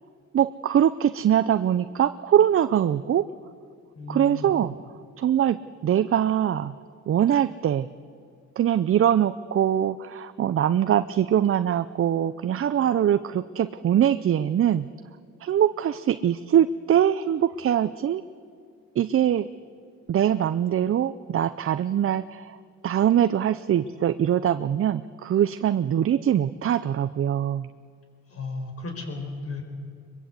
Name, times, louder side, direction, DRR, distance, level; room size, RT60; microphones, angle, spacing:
voice 1, 0.3-3.3 4.1-4.7 5.2-6.8 7.1-7.9 8.6-14.9 15.4-18.2 19.0-19.5 20.1-22.6 22.8-27.7, right 10 dB, 45° right, 12 dB, 0.6 m, -23 dB
voice 2, 4.0-4.5 28.3-29.6, left 3 dB, 50° left, 4 dB, 5.4 m, -34 dB
22.5 x 22.5 x 8.3 m, 2.2 s
cardioid pair, 90°, 30 cm